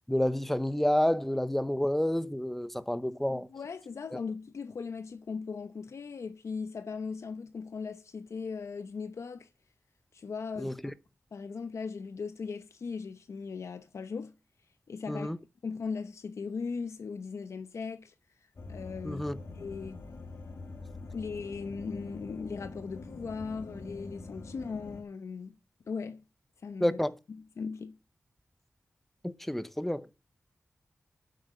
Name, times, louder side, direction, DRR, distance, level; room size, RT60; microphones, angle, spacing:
voice 1, 0.1-3.5 4.1-4.2 10.6-10.7 15.1-15.4 19.0-19.4 26.8-27.2 29.2-30.1, left 1 dB, 5° left, 0.7 m, -29 dB
voice 2, 3.3-9.5 10.1-10.9 11.3-14.3 14.9-15.3 15.6-18.1 18.7-19.2 19.5-20.0 21.1-25.5 25.9-26.2 26.6-27.0 27.6-27.9, left 5 dB, 80° left, 0.8 m, -38 dB
sound 1, 18.6-25.0, left 3 dB, 60° left, 2.4 m, -44 dB
9.7 x 7.9 x 6.6 m
wide cardioid pair, 130°, 5 cm